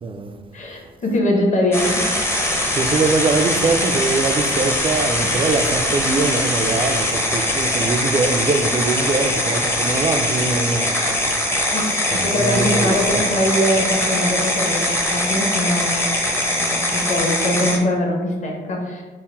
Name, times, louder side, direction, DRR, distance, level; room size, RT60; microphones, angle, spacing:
voice 1, 0.0-0.4 2.8-11.2 12.1-13.2, right 3 dB, 25° right, 0.4 m, -22 dB
voice 2, 0.5-2.1 11.7-16.2 16.5-19.0, left 1 dB, 40° left, 0.9 m, -22 dB
sound 1, 1.7-17.8, left 1 dB, 15° left, 0.6 m, -21 dB
3.8 x 2.1 x 4.3 m
cardioid pair, 90°, 20 cm